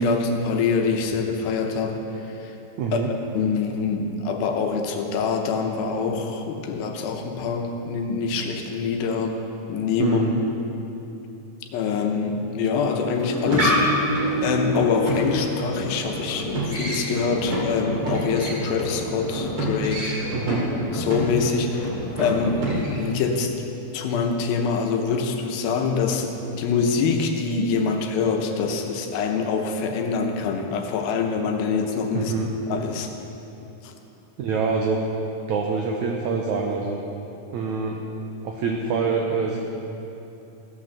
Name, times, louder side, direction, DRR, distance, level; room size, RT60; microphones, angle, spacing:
voice 1, 0.0-2.6 2.9-9.4 9.7-10.2 11.7-14.1 14.4-20.2 20.9-23.5 23.9-32.3 32.7-33.1 33.8-33.9, left 5 dB, 80° left, 3 dB, 2.7 m, -25 dB
voice 2, 2.8-3.1 10.0-10.4 20.3-20.7 32.1-32.5 34.4-35.0 35.5-37.0 37.5-38.0 38.4-39.7, right 4 dB, 80° right, 0 dB, 1.7 m, -25 dB
sound 1, 13.1-23.1, equal, 40° right, 2.9 m, -27 dB
15.5 x 6.0 x 6.7 m, 2.9 s
omnidirectional pair, 4.3 m